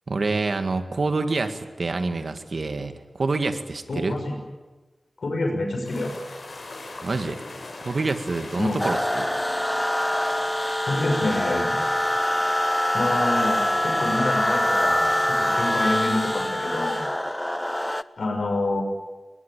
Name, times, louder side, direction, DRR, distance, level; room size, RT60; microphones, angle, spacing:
voice 1, 0.1-4.2 7.0-7.4 7.8-9.7, right 3 dB, 65° right, 8 dB, 1.9 m, -27 dB
voice 2, 3.9-4.4 5.2-6.1 8.6-8.8 10.9-11.8 12.9-17.0 18.2-18.8, left 2 dB, 85° left, 2 dB, 6.2 m, -27 dB
sound 1, 5.8-16.3, left 2 dB, 65° left, 6.1 m, -42 dB
sound 2, 8.8-18.0, left 1 dB, 10° left, 0.7 m, -24 dB
22.0 x 20.5 x 9.1 m, 1.2 s
wide cardioid pair, 60°, 0 cm